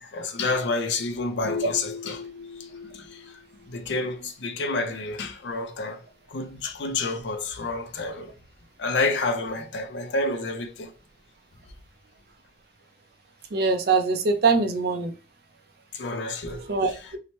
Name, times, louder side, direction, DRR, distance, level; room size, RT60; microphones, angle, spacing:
voice 1, 0.0-6.0 6.3-8.3 8.8-10.9 15.9-17.1, left 3 dB, 80° left, 0.5 m, -29 dB
voice 2, 13.5-15.1 16.7-17.2, right 4 dB, 60° right, 0.5 m, -23 dB
2.7 x 2.1 x 2.9 m
head